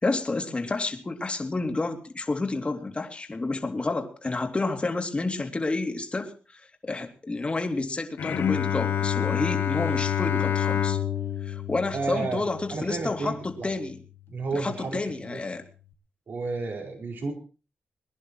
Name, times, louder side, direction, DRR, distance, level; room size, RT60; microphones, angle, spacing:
voice 1, 0.0-11.0 11.4-14.0 14.5-15.6, left 3 dB, 30° left, 5 dB, 2.7 m, -30 dB
Bowed string instrument, 8.2-13.5, left 9 dB, 80° left, 1.5 m, -28 dB
voice 2, 11.9-13.7 14.3-15.0 15.3-15.4 16.3-17.3, right 3 dB, 60° right, 2 dB, 4.6 m, -32 dB
22.0 x 11.0 x 4.6 m, 0.36 s
cardioid pair, 65°, 4 cm